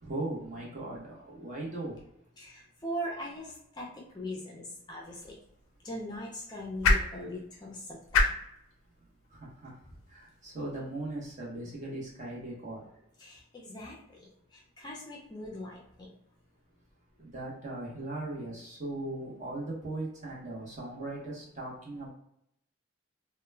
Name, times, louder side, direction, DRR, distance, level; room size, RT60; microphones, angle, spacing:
voice 1, 0.0-2.0 9.4-9.7 10.1-12.8 17.2-22.1, right 2 dB, 35° right, -4 dB, 0.8 m, -38 dB
voice 2, 2.4-5.3 5.8-8.2 13.2-14.2 14.5-16.1, equal, 20° left, -2 dB, 0.4 m, -40 dB
sound 1, 5.0-11.3, left 3 dB, 85° left, 0.4 m, -33 dB
2.2 x 2.1 x 3.2 m, 0.76 s
head